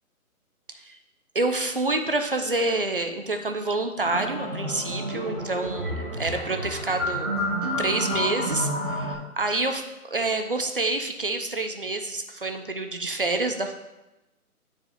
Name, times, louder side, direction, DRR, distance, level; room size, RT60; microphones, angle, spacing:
voice 1, 0.7-1.0 1.3-7.3 7.8-13.7, right 2 dB, 40° right, 6 dB, 0.4 m, -28 dB
sound 1, 4.0-9.1, equal, 15° right, 0.8 m, -30 dB
10.0 x 4.9 x 2.5 m, 1.0 s
hypercardioid pair, 165°, 44 cm